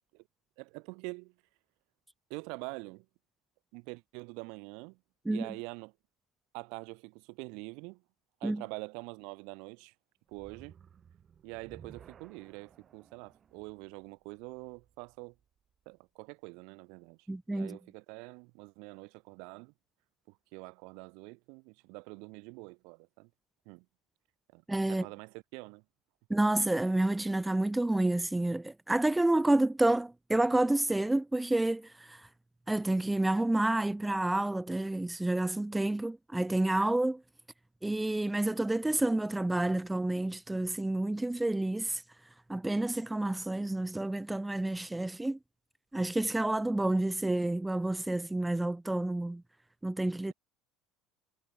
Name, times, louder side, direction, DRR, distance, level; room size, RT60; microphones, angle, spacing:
voice 1, 0.6-1.3 2.3-3.1 3.7-5.0 5.3-5.9 6.5-8.0 8.4-9.9 10.3-10.8 11.4-15.3 15.9-17.2 17.5-19.7 20.3-23.3 23.7-23.8 24.5-24.6 24.9-25.8, right 32 dB, 70° right, 3.8 m, -45 dB
sound 1, 10.3-15.6, right 7 dB, 30° right, 5.6 m, -57 dB
voice 2, 17.3-17.8 24.7-25.1 26.3-32.3 32.7-37.2 37.8-42.0 42.5-45.4 45.9-49.4 49.8-50.3, right 2 dB, 5° right, 0.5 m, -29 dB
cardioid pair, 145°, 0 cm